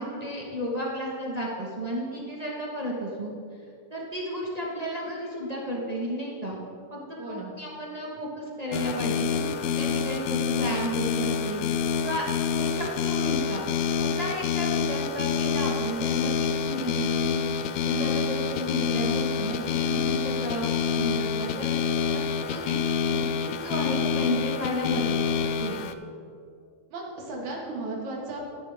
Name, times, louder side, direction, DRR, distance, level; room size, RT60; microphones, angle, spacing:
voice 1, 0.0-3.3 3.9-6.6 6.9-7.0 7.3-12.3 12.5-13.6 14.0-17.5 17.8-22.8 23.1-25.2 25.6-25.8, equal, 45° right, -4 dB, 0.4 m, -33 dB
voice 2, 7.2-7.5 26.9-28.6, right 2 dB, 75° right, -2 dB, 3.2 m, -35 dB
sound 1, 8.7-25.9, left 6 dB, 80° left, 1.8 m, -27 dB
14.0 x 11.0 x 3.5 m, 2.4 s
omnidirectional pair, 3.3 m